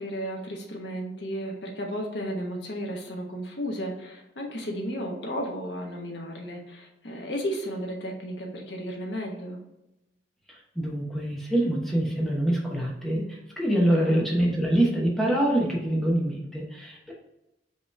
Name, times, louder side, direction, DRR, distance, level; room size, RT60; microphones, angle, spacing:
voice 1, 0.0-9.6 14.0-14.3, equal, 75° left, 0 dB, 1.2 m, -34 dB
voice 2, 10.5-17.1, right 1 dB, ahead, -3 dB, 0.9 m, -25 dB
5.2 x 3.1 x 3.3 m, 0.90 s
head